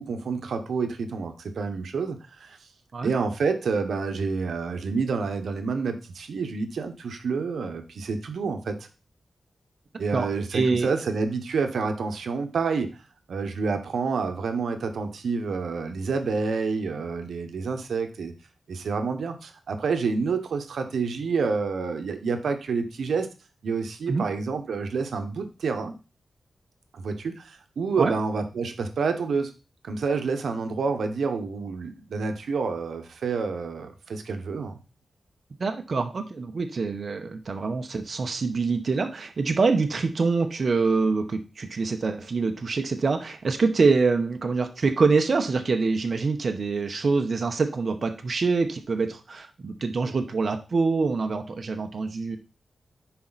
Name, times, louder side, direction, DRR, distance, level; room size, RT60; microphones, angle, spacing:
voice 1, 0.0-2.6 3.0-8.9 10.0-13.0 13.3-18.3 18.7-23.3 23.6-25.9 26.9-29.5 29.8-34.8, right 4 dB, 90° right, 7 dB, 1.0 m, -28 dB
voice 2, 10.1-10.9 24.1-24.3 28.0-28.1 35.6-52.4, right 4 dB, 50° right, 5 dB, 0.9 m, -25 dB
10.0 x 4.3 x 4.0 m, 0.31 s
wide cardioid pair, 115°, 0 cm